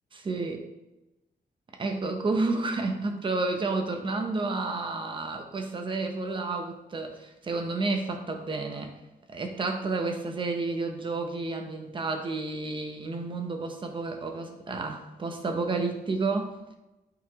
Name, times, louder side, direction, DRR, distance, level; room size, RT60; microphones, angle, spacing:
voice 1, 0.1-0.6 1.8-9.0 9.3-16.5, right 3 dB, 30° right, 5 dB, 0.7 m, -30 dB
8.7 x 4.1 x 2.8 m, 0.98 s
wide cardioid pair, 175°, 17 cm